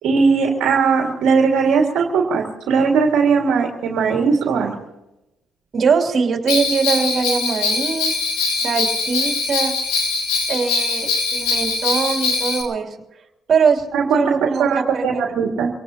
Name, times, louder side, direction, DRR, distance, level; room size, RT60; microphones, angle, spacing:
voice 1, 0.0-4.7 13.9-15.7, right 5 dB, 80° right, 0 dB, 2.0 m, -18 dB
voice 2, 5.7-8.1 8.6-9.7 10.5-12.9 13.5-13.8 14.1-15.2, right 5 dB, 55° right, 2 dB, 3.0 m, -21 dB
Bell, 6.5-12.6, left 4 dB, 90° left, 4.5 m, -22 dB
25.0 x 18.0 x 2.9 m, 0.94 s
supercardioid pair, 65°, 0 cm